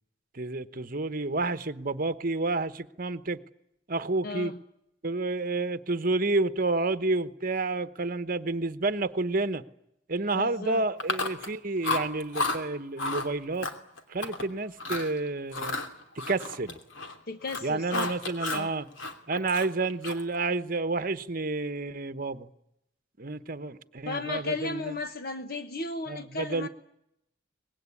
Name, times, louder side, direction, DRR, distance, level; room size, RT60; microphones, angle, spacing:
voice 1, 0.3-3.4 3.9-4.5 5.0-9.6 10.1-13.7 14.1-15.8 16.1-16.8 17.6-18.9 19.3-22.5 23.2-24.9 26.1-26.7, right 3 dB, 45° right, 12 dB, 1.1 m, -30 dB
voice 2, 4.2-4.6 10.3-10.8 17.3-18.1 18.5-18.7 24.1-26.7, left 3 dB, 50° left, 9 dB, 1.1 m, -34 dB
Chewing mastication, 11.0-11.5 11.8-12.6 13.0-13.3 13.6-14.4 14.8-15.1 15.5-17.2 17.4-18.7 19.0-20.3, left 3 dB, 75° left, 2.8 m, -32 dB
24.5 x 20.5 x 9.8 m, 0.80 s
head